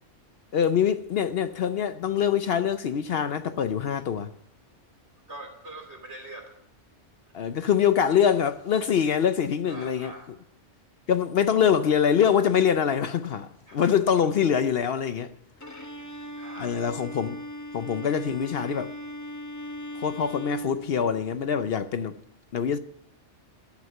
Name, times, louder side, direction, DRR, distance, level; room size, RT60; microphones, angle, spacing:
voice 1, 0.5-4.3 7.3-10.1 11.1-15.3 16.6-17.4 17.7-18.9 19.9-22.2 22.5-22.8, left 8 dB, 60° left, 0.8 m, -24 dB
voice 2, 5.3-6.6 9.7-10.3 13.7-13.8 16.4-16.7, right 1 dB, 65° right, 3.1 m, -43 dB
Bowed string instrument, 15.6-21.5, equal, 15° left, 0.7 m, -39 dB
11.5 x 6.5 x 9.0 m
omnidirectional pair, 1.2 m